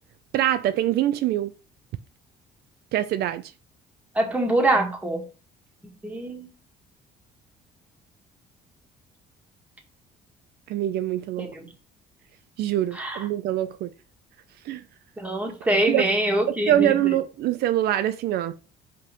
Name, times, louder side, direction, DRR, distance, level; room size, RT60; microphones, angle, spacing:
voice 1, 0.3-1.5 2.9-3.4 10.7-11.5 12.6-13.9 14.7-14.8 15.9-16.0 16.7-18.5, right 12 dB, 70° right, 0.6 m, -24 dB
voice 2, 4.2-5.2 6.0-6.5 11.4-11.7 12.9-13.2 15.2-17.2, right 1 dB, 10° right, 1.9 m, -24 dB
5.5 x 3.8 x 5.2 m
cardioid pair, 110°, 17 cm